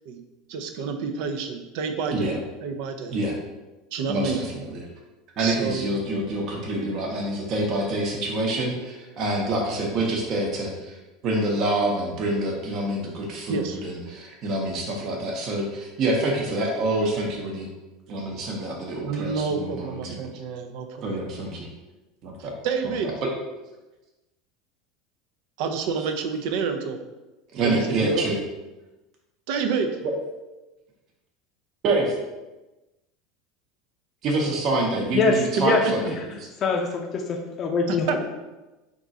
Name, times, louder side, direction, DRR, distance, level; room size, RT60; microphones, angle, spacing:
voice 1, 0.5-2.3 2.6-3.1 3.9-4.4 5.4-5.8 13.5-13.8 19.0-21.2 22.4-23.1 25.6-27.0 27.6-28.3 29.5-29.9 35.6-35.7 36.0-36.1 37.9-38.2, right 5 dB, 70° right, 5 dB, 0.5 m, -28 dB
voice 2, 4.1-4.8 5.4-11.0 11.2-17.7 18.1-20.2 21.0-21.7 22.2-22.5 27.5-28.4 30.0-30.1 31.8-32.1 34.2-36.0, right 2 dB, 45° right, -1 dB, 0.8 m, -26 dB
voice 3, 35.1-36.1 36.6-38.2, left 3 dB, 40° left, 1 dB, 0.5 m, -24 dB
3.7 x 2.5 x 4.0 m, 1.1 s
supercardioid pair, 120°, 0 cm